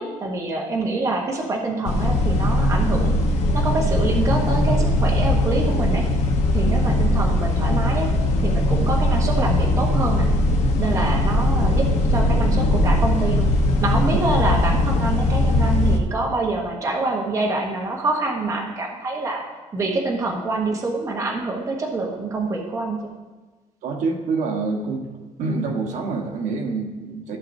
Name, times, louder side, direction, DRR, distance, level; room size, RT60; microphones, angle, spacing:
voice 1, 0.0-3.2 3.5-6.0 6.5-8.1 8.4-10.3 10.8-13.5 13.8-19.4 19.7-23.1, right 2 dB, 25° right, -1 dB, 1.0 m, -26 dB
sound 1, 1.9-16.0, left 1 dB, 60° left, 1.1 m, -20 dB
voice 2, 23.8-25.0 25.4-27.4, right 4 dB, 65° right, 2 dB, 1.3 m, -27 dB
14.5 x 6.4 x 2.7 m, 1.2 s
cardioid pair, 170°, 13 cm